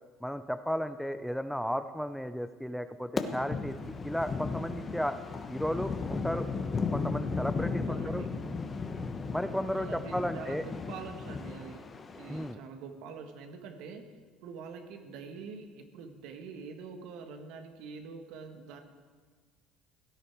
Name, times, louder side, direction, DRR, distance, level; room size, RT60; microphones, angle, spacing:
voice 1, 0.2-3.8 4.0-5.2 5.5-6.5 6.9-8.2 9.3-10.6 12.3-12.6, equal, ahead, 11 dB, 0.6 m, -34 dB
sound 1, 3.2-12.5, left 4 dB, 35° left, 1.2 m, -35 dB
voice 2, 7.9-8.3 9.7-11.9 12.2-14.0 14.4-18.8, right 5 dB, 75° right, 5 dB, 1.5 m, -45 dB
17.0 x 9.9 x 4.7 m, 1.5 s
supercardioid pair, 75°, 0 cm